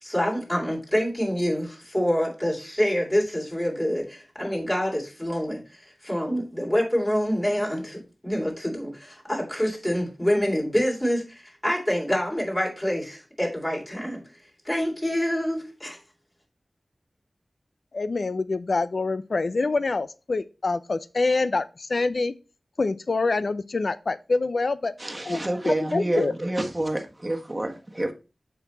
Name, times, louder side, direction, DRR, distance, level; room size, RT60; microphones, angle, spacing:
voice 1, 0.0-14.2 14.6-16.0, equal, 20° left, 3.2 m, -26 dB
voice 2, 17.9-22.3 22.8-24.9 25.3-26.3, left 3 dB, 65° left, 0.5 m, -26 dB
voice 3, 25.0-28.1, right 1 dB, 20° right, 1.3 m, -28 dB
7.0 x 4.7 x 4.0 m
wide cardioid pair, 60°, 0 cm